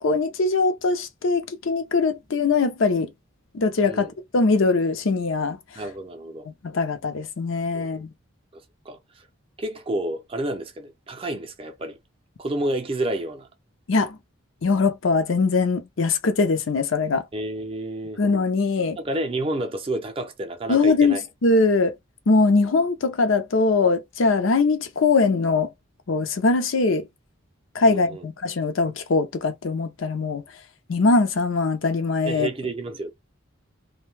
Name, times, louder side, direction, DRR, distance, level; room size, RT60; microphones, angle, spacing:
voice 1, 0.0-3.1 3.5-4.1 4.3-5.6 6.6-8.1 13.9-14.2 14.6-17.2 18.2-19.0 20.7-21.9 22.3-25.7 26.1-27.1 27.7-30.4 30.9-32.5, left 3 dB, 70° left, 0.6 m, -21 dB
voice 2, 5.8-6.5 7.7-8.0 8.5-9.3 9.6-12.0 12.4-13.5 17.3-18.2 19.0-21.2 27.8-28.2 32.2-33.1, right 1 dB, 25° right, 0.4 m, -30 dB
2.6 x 2.2 x 3.1 m
head